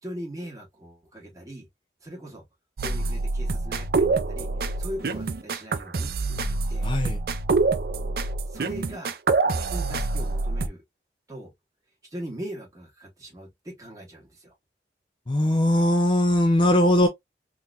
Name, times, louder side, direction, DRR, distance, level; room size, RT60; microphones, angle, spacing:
voice 1, 0.0-1.7 2.0-2.4 2.8-6.9 8.5-9.2 9.4-10.8 11.3-11.5 12.0-14.5, equal, 20° right, 1.7 m, -40 dB
sound 1, 2.8-10.7, right 3 dB, 55° right, 0.4 m, -26 dB
voice 2, 6.8-7.2 15.3-17.1, left 1 dB, 30° left, 0.5 m, -20 dB
3.8 x 3.0 x 2.4 m
head